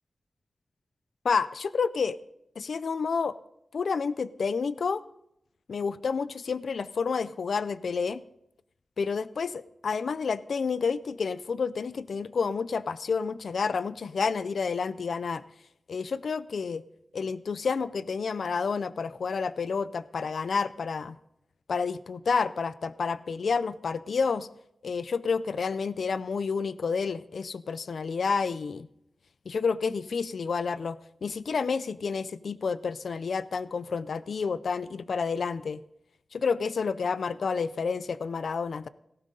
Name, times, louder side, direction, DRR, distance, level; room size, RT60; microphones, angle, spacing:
voice 1, 1.2-2.2 2.6-3.3 3.7-5.0 5.7-8.2 9.0-15.4 15.9-16.8 17.1-21.1 21.7-24.5 24.8-28.9 29.5-35.8 36.3-38.9, left 5 dB, 85° left, 16 dB, 0.4 m, -29 dB
17.5 x 14.5 x 3.8 m, 0.78 s
wide cardioid pair, 105°, 0 cm